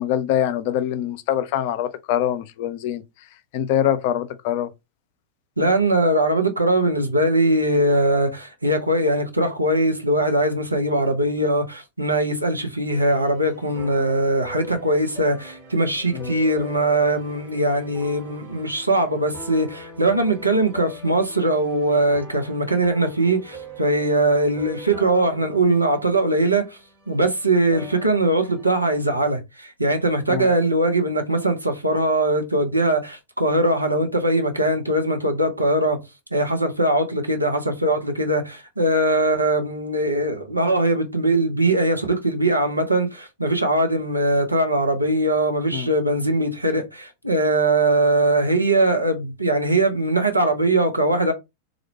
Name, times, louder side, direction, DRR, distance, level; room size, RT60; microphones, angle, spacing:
voice 1, 0.0-3.0 3.5-4.7 16.1-16.3 30.3-30.5 45.7-45.9, left 10 dB, 50° left, 0.4 m, -24 dB
voice 2, 5.6-26.7 27.1-36.0 36.3-51.3, right 1 dB, 85° right, 0.6 m, -21 dB
sound 1, 12.9-29.0, equal, 40° right, 1.2 m, -42 dB
2.5 x 2.1 x 2.8 m
figure-of-eight pair, 90°, 0 cm